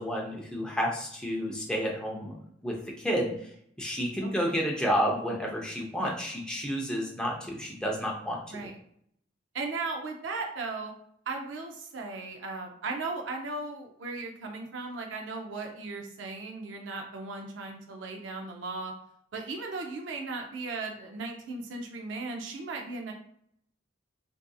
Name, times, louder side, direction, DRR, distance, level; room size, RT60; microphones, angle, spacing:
voice 1, 0.0-2.3 2.6-3.3 3.8-8.4, equal, 5° left, -1 dB, 0.5 m, -30 dB
voice 2, 4.2-4.5 6.0-6.1 8.5-8.8 9.5-10.9 11.3-18.9 19.3-23.1, right 3 dB, 75° right, 2 dB, 0.4 m, -37 dB
2.6 x 2.4 x 2.3 m, 0.68 s
head